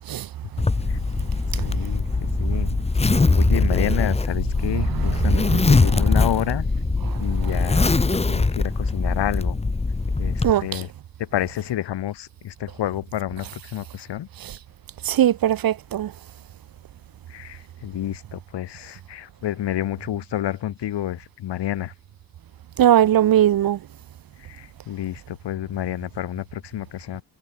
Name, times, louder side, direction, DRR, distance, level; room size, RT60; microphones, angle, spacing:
Zipper (clothing), 0.6-10.5, left 3 dB, 15° left, 0.9 m, -21 dB
voice 1, 1.6-2.8 3.4-6.7 7.1-9.6 10.2-10.9 11.2-14.3 17.3-21.9 24.4-27.2, left 12 dB, 65° left, 1.3 m, -29 dB
voice 2, 4.7-5.5 7.0-7.5 10.4-10.8 14.4-14.6 15.0-16.1 22.8-23.8, right 11 dB, 50° right, 0.8 m, -21 dB
cardioid pair, 95°, 44 cm